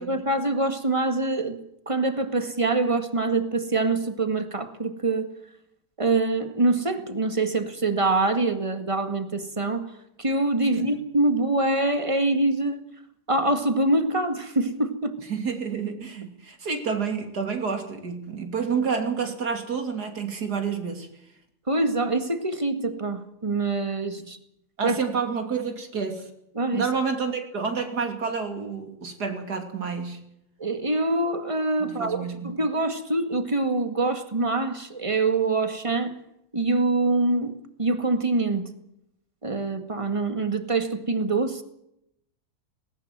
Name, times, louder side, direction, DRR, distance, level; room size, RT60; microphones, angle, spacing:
voice 1, 0.0-1.6 1.9-5.3 6.0-9.9 10.2-12.8 13.3-15.1 21.7-24.4 24.8-25.0 26.6-26.9 30.6-36.1 36.5-37.5 37.8-38.7 39.4-41.6, right 2 dB, 20° right, 9 dB, 1.9 m, -25 dB
voice 2, 15.3-21.1 24.2-24.3 24.8-26.3 26.7-30.2 31.8-32.5, right 5 dB, 75° right, 6 dB, 3.3 m, -29 dB
19.5 x 18.5 x 7.6 m, 0.77 s
omnidirectional pair, 1.7 m